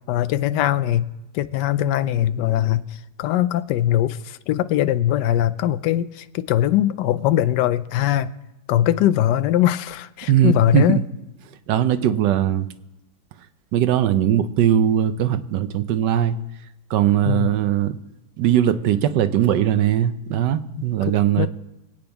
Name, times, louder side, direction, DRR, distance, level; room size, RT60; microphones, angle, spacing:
voice 1, 0.1-1.1 1.3-2.9 3.2-8.3 8.7-11.0 17.3-17.5 21.0-21.5, left 12 dB, 85° left, 14 dB, 1.2 m, -21 dB
voice 2, 10.3-11.0 11.7-12.7 13.7-16.4 16.9-18.0 18.4-21.5, right 11 dB, 85° right, 12 dB, 1.3 m, -20 dB
25.5 x 8.7 x 3.5 m, 0.97 s
omnidirectional pair, 1.8 m